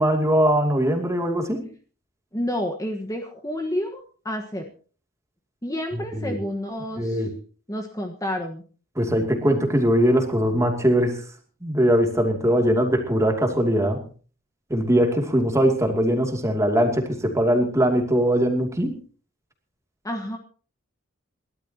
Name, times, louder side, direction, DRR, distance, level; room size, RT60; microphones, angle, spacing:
voice 1, 0.0-1.7 5.9-6.4 7.0-7.3 9.0-11.2 11.6-14.0 14.7-18.9, equal, 15° right, 4 dB, 2.6 m, -21 dB
voice 2, 2.3-4.7 5.6-7.2 7.7-8.6 20.0-20.4, left 1 dB, 15° left, 2 dB, 1.4 m, -29 dB
28.0 x 12.5 x 2.9 m, 0.39 s
head